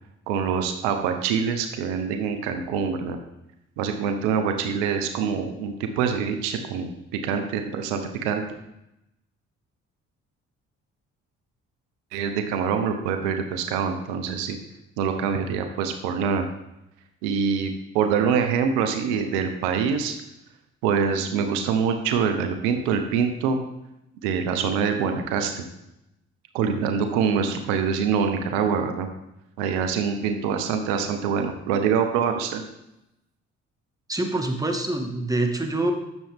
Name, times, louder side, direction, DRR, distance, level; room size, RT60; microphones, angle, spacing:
voice 1, 0.3-3.2 3.8-8.4 12.1-14.6 15.0-16.4 17.2-20.1 20.8-23.6 24.2-25.6 26.5-29.1 29.6-32.6, right 6 dB, 85° right, 6 dB, 0.9 m, -25 dB
voice 2, 34.1-35.9, right 2 dB, 10° right, 3 dB, 1.8 m, -25 dB
11.0 x 7.1 x 3.6 m, 0.88 s
hypercardioid pair, 55°, 33 cm